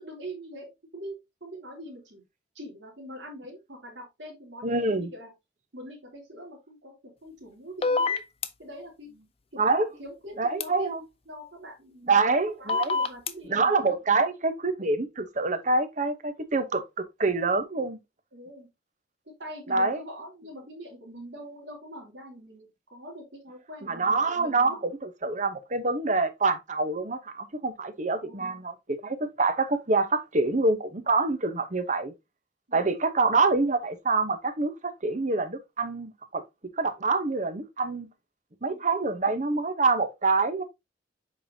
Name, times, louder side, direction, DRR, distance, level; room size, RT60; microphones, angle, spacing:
voice 1, 0.0-2.2 2.5-5.3 5.7-8.2 8.6-9.1 9.5-9.6 10.0-10.9 11.3-12.2 12.6-13.9 18.3-18.7 19.2-24.9 28.1-28.6 32.7-32.9 38.6-38.8, equal, 85° right, 3.0 m, -43 dB
voice 2, 4.6-5.1 9.6-10.0 10.3-11.1 12.1-13.0 13.4-16.8 17.2-18.0 19.7-20.1 23.8-32.1 32.7-36.4 36.8-38.1 38.6-40.6, right 3 dB, 40° right, 1.0 m, -26 dB
sound 1, 7.8-8.5 10.6-10.7 12.7-13.3, left 4 dB, 30° left, 0.7 m, -25 dB
7.7 x 5.2 x 2.8 m
head